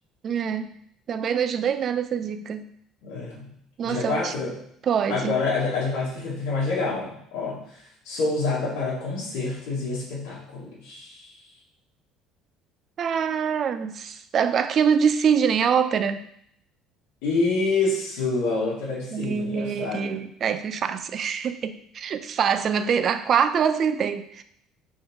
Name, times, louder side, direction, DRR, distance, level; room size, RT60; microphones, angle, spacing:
voice 1, 0.2-0.7 1.1-2.6 3.8-4.3 4.8-5.4 13.0-16.2 19.1-24.4, right 7 dB, 35° right, 10 dB, 0.4 m, -24 dB
voice 2, 3.0-3.5 3.8-4.5 5.1-7.8 8.0-11.3 17.2-20.2, left 3 dB, 80° left, -8 dB, 2.3 m, -27 dB
4.9 x 4.4 x 4.6 m, 0.68 s
cardioid pair, 150°, 0 cm